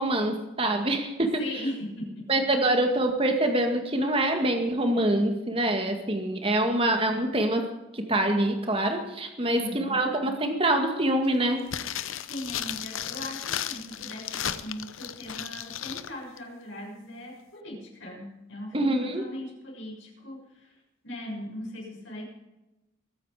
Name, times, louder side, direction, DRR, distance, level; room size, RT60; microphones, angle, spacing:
voice 1, 0.0-1.4 2.3-11.7 18.7-19.2, right 1 dB, 25° right, 4 dB, 2.0 m, -25 dB
voice 2, 1.4-2.3 9.4-10.0 12.3-22.2, left 1 dB, 70° left, -2 dB, 6.4 m, -39 dB
sound 1, 11.7-16.1 16.4-16.5, left 10 dB, 85° left, 0.8 m, -34 dB
21.5 x 9.4 x 5.0 m, 1.0 s
head